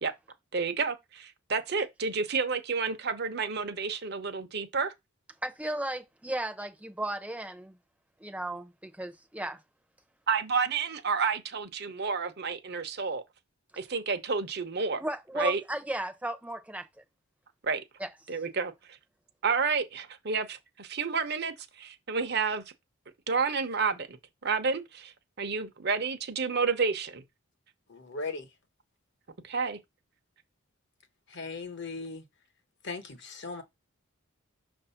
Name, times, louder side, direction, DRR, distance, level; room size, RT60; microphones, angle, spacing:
voice 1, 0.5-4.9 10.3-13.2 13.8-15.0 15.4-15.6 17.6-17.8 18.3-19.0 19.4-22.6 23.3-24.2 24.4-27.2 29.4-29.8, right 5 dB, 50° right, 0.8 m, -30 dB
voice 2, 5.4-7.8 8.2-9.6 15.0-16.9 18.0-18.1, right 1 dB, 5° right, 0.7 m, -35 dB
voice 3, 27.9-28.5 31.3-32.3 32.8-33.6, left 3 dB, 55° left, 1.1 m, -38 dB
6.4 x 2.7 x 5.6 m
head